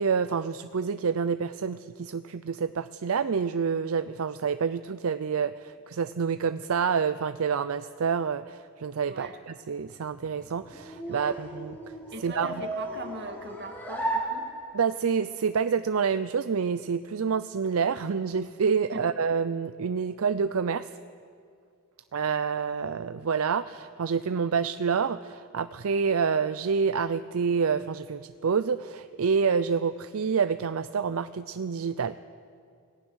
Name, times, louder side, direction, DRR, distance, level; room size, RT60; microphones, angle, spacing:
voice 1, 0.0-11.8 12.2-12.5 14.7-20.9 22.1-32.2, right 6 dB, 75° right, 13 dB, 0.5 m, -28 dB
sound 1, 10.1-15.0, right 1 dB, 10° left, 4.5 m, -35 dB
voice 2, 12.1-14.5 18.9-19.0, right 2 dB, 55° right, 6 dB, 2.0 m, -40 dB
27.0 x 18.0 x 6.4 m, 2.3 s
head